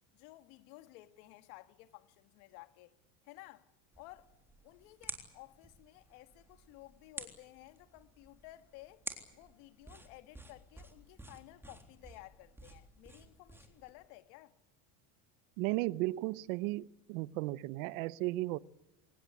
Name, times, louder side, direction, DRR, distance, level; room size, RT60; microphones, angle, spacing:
voice 1, 0.1-2.9 3.2-3.7 4.0-4.3 4.6-9.0 9.3-14.6, left 18 dB, 65° left, 1.9 m, -55 dB
sound 1, 3.9-13.9, right 2 dB, 5° right, 3.6 m, -51 dB
voice 2, 15.6-18.6, right 19 dB, 70° right, 0.9 m, -35 dB
24.5 x 20.0 x 8.3 m
supercardioid pair, 145°, 43 cm